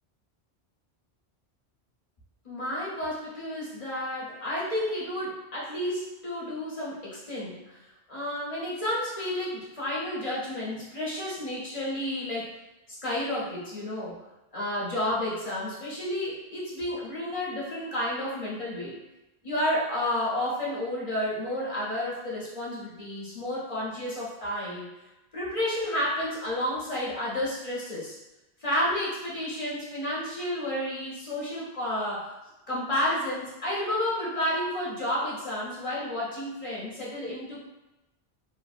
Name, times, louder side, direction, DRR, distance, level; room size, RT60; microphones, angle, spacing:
voice 1, 2.4-7.8 8.1-12.5 12.9-14.2 14.5-18.9 19.4-24.9 25.3-28.2 28.6-32.3 32.7-37.7, left 1 dB, 35° left, -7 dB, 0.7 m, -31 dB
3.1 x 2.1 x 2.4 m, 1.0 s
omnidirectional pair, 1.1 m